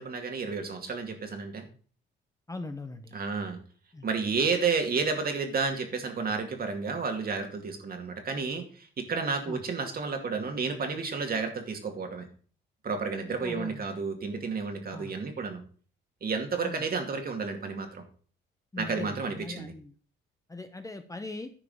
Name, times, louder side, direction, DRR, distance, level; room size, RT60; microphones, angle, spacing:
voice 1, 0.0-1.7 3.1-3.6 4.0-12.3 12.8-15.6 16.2-18.0 18.8-19.7, right 4 dB, 50° right, 5 dB, 2.4 m, -31 dB
voice 2, 2.5-3.2 3.9-4.1 9.5-9.6 13.4-13.9 14.9-15.2 16.6-16.9 18.7-19.9 20.5-21.5, left 2 dB, 15° left, 8 dB, 1.0 m, -40 dB
10.0 x 4.9 x 6.5 m, 0.43 s
cardioid pair, 90°, 20 cm